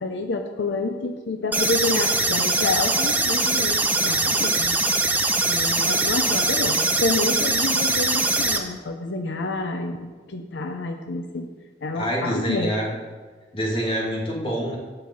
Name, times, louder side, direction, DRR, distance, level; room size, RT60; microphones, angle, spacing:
voice 1, 0.0-4.8 5.5-11.5 11.8-12.8, left 3 dB, 80° left, 6 dB, 0.7 m, -28 dB
sound 1, 1.5-8.6, right 2 dB, 10° right, 0.7 m, -22 dB
voice 2, 11.9-12.9 13.5-14.8, equal, 30° left, -2 dB, 2.5 m, -26 dB
9.8 x 5.6 x 7.8 m, 1.4 s
head